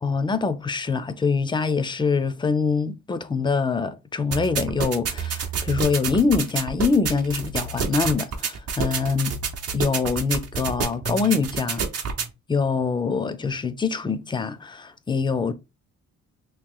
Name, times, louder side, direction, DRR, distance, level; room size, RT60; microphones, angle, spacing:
voice 1, 0.0-9.4 9.7-11.8 12.5-15.5, left 4 dB, 15° left, 0.4 m, -24 dB
sound 1, 4.3-12.3, right 5 dB, 55° right, 0.7 m, -29 dB
3.0 x 2.9 x 3.7 m
cardioid pair, 120°, 29 cm